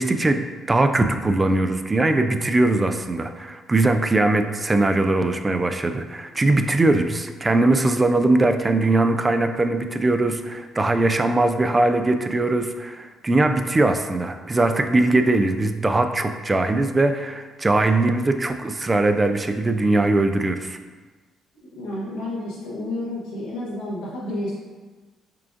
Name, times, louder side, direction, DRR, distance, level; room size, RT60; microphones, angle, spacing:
voice 1, 0.0-20.8, right 2 dB, 25° right, 7 dB, 0.3 m, -21 dB
voice 2, 21.8-24.6, left 1 dB, 85° left, -6 dB, 1.0 m, -30 dB
5.6 x 2.4 x 2.5 m, 1.3 s
supercardioid pair, 60°, 0 cm